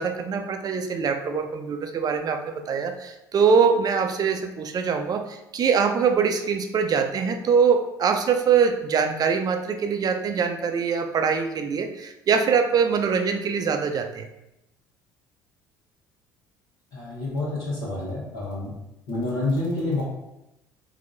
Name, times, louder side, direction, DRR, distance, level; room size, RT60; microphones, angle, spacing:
voice 1, 0.0-14.3, right 6 dB, 40° right, 6 dB, 0.5 m, -23 dB
voice 2, 16.9-18.7 19.1-20.0, left 2 dB, 65° left, -9 dB, 1.3 m, -28 dB
3.6 x 2.7 x 3.8 m, 0.91 s
hypercardioid pair, 60°, 10 cm